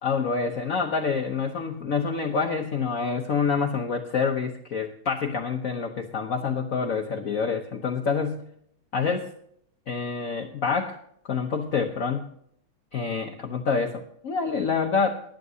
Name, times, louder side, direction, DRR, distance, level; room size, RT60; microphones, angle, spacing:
voice 1, 0.0-8.4 8.9-9.3 9.9-12.3 12.9-15.2, left 5 dB, 55° left, 3 dB, 1.1 m, -27 dB
20.0 x 10.5 x 2.7 m, 0.68 s
omnidirectional pair, 2.3 m